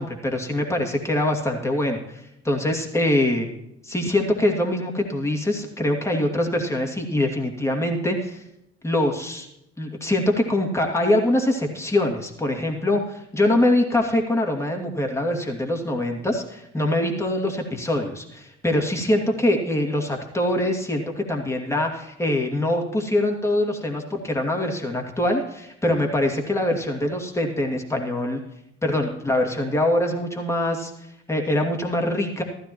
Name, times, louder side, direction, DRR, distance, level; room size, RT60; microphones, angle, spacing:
voice 1, 0.0-3.5 3.8-8.4 8.8-9.5 9.8-28.4 28.8-30.9 31.3-32.4, left 1 dB, 10° left, 1 dB, 2.4 m, -23 dB
15.0 x 12.5 x 3.0 m, 0.80 s
hypercardioid pair, 55°, 35 cm